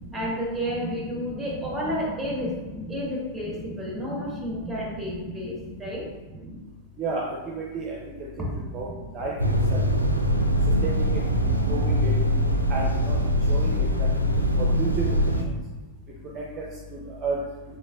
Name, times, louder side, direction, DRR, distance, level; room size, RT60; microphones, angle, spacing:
voice 1, 0.1-2.5 2.9-6.1 8.4-8.6, equal, 5° right, -4 dB, 1.3 m, -31 dB
voice 2, 7.5-8.0 8.4-8.5 8.7-8.9 9.1-9.3 9.7-9.8 10.8-10.9 11.7-12.1 12.7-13.1 13.5-13.8 14.3-14.4 14.8-15.0 16.3-16.4 17.2-17.4, right 4 dB, 30° right, -3 dB, 0.6 m, -30 dB
sound 1, 9.4-15.4, equal, 90° right, 0.4 m, -22 dB
3.9 x 3.6 x 2.4 m, 1.2 s
figure-of-eight pair, 90°, 0 cm